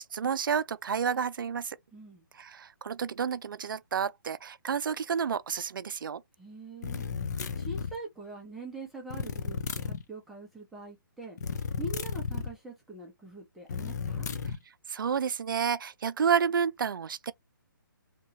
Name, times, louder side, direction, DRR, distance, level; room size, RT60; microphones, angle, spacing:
voice 1, 0.0-1.8 2.3-6.2 14.9-17.3, right 7 dB, 70° right, 0.4 m, -30 dB
voice 2, 1.9-2.2 6.4-7.0 7.3-11.4 11.8-14.3, right 3 dB, ahead, 0.6 m, -43 dB
sound 1, 6.8-8.0 9.1-10.0 11.4-12.5 13.7-14.6, left 6 dB, 50° left, 0.5 m, -33 dB
3.0 x 2.3 x 2.7 m
hypercardioid pair, 160°, 12 cm